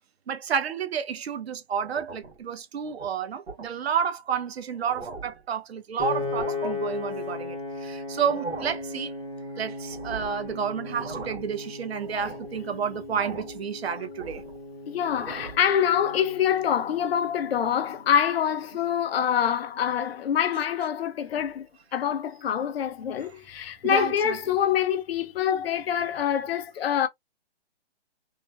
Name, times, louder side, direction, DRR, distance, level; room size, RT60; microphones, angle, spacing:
voice 1, 0.3-9.1 9.6-14.4 23.8-24.4, right 7 dB, 70° right, 0.6 m, -30 dB
sound 1, 1.8-2.4 2.9-3.1 3.5-3.7 4.3-4.4 4.7-5.4 6.2-6.7 8.1-8.8 9.9-10.4 10.8-11.5 12.0-12.5 13.2-13.6 14.0-14.6 15.0-15.7, right 3 dB, 85° right, 1.3 m, -39 dB
Piano, 6.0-18.2, left 3 dB, 20° right, 0.6 m, -37 dB
voice 2, 14.9-27.1, left 9 dB, 65° left, 0.5 m, -25 dB
3.1 x 2.0 x 2.2 m
hypercardioid pair, 160°, 33 cm